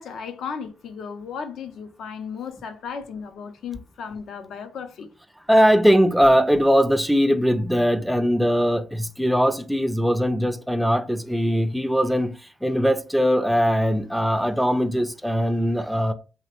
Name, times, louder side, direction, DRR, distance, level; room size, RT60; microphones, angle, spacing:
voice 1, 0.0-5.1, left 6 dB, 70° left, 0.5 m, -35 dB
voice 2, 5.5-12.3 12.6-16.1, equal, ahead, 0.3 m, -20 dB
3.0 x 2.1 x 2.9 m
cardioid pair, 90°, 0 cm